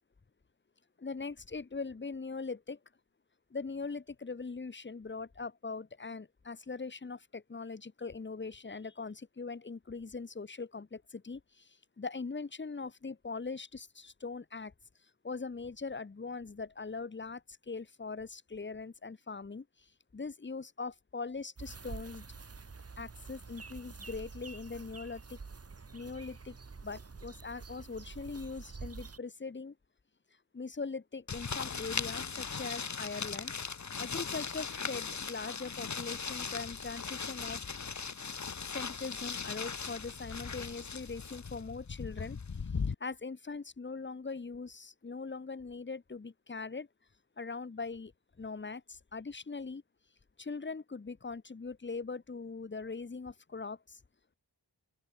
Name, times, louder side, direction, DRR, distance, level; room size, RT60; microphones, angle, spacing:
voice 1, 1.0-2.8 3.5-14.7 15.2-22.2 23.0-25.4 25.9-26.6 26.8-29.7 30.5-33.5 34.0-37.6 38.7-46.9 47.4-48.1 48.4-49.8 50.4-54.0, left 4 dB, 25° left, 1.4 m, -41 dB
sound 1, 21.6-29.2, right 4 dB, 35° right, 2.3 m, -47 dB
sound 2, 31.3-42.9, left 5 dB, 40° left, 1.9 m, -38 dB
wide cardioid pair, 165°, 42 cm